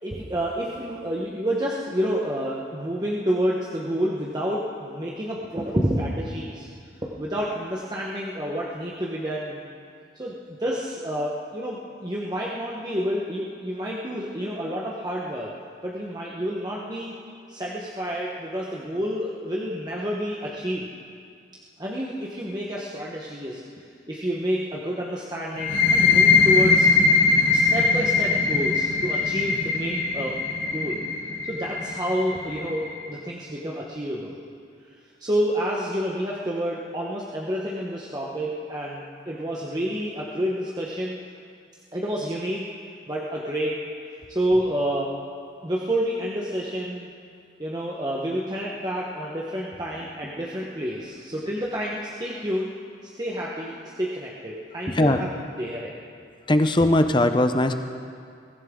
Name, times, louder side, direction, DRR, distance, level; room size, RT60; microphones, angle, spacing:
voice 1, 0.0-6.7 7.0-9.6 10.1-15.5 15.8-17.1 17.5-20.8 21.8-26.9 27.5-31.0 31.5-34.4 35.2-41.2 41.9-42.7 43.1-43.8 44.3-45.1 45.6-47.1 47.6-52.7 53.0-55.3 55.6-55.9, equal, 20° right, -5 dB, 1.1 m, -29 dB
sound 1, 25.5-33.0, left 4 dB, 75° left, 3.9 m, -21 dB
voice 2, 54.9-55.2 56.5-57.7, left 1 dB, 25° left, 7 dB, 0.7 m, -19 dB
22.5 x 15.0 x 3.8 m, 2.3 s
head